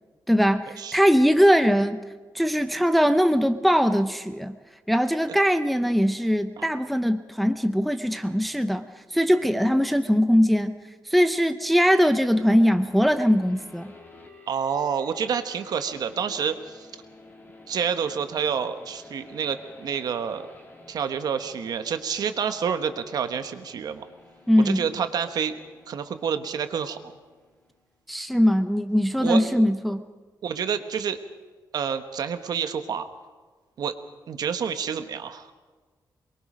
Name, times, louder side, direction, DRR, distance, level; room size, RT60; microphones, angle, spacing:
voice 1, 0.3-2.0 2.3-4.6 4.9-8.9 9.1-10.8 11.1-13.9 24.5-24.8 28.1-30.0, equal, ahead, 9 dB, 0.6 m, -21 dB
sound 1, 12.1-27.8, left 2 dB, 25° left, 2.5 m, -51 dB
voice 2, 14.5-16.9 17.7-20.5 20.9-24.0 24.6-25.6 25.9-27.1 29.2-29.7 30.4-31.2 31.7-33.1 33.8-33.9 34.3-35.5, right 7 dB, 60° right, 9 dB, 1.2 m, -28 dB
23.5 x 22.0 x 5.1 m, 1.4 s
wide cardioid pair, 180°, 8 cm